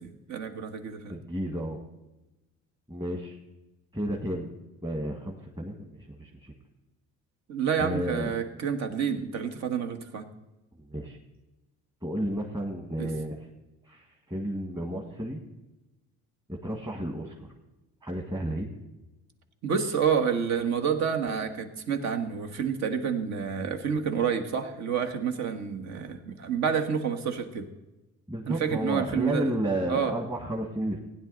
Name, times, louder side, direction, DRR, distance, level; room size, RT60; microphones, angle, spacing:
voice 1, 0.0-1.2 7.5-10.3 13.0-13.1 19.6-27.7 28.5-29.5 29.9-30.1, right 7 dB, 65° right, 6 dB, 1.5 m, -29 dB
voice 2, 1.1-1.8 2.9-3.4 3.9-4.5 4.8-6.5 7.8-8.3 10.8-11.2 12.0-13.4 13.9-15.4 16.5-17.5 18.0-18.7 28.3-31.0, right 1 dB, 15° right, 1 dB, 1.5 m, -32 dB
16.0 x 9.9 x 4.0 m, 1.0 s
cardioid pair, 115°, 29 cm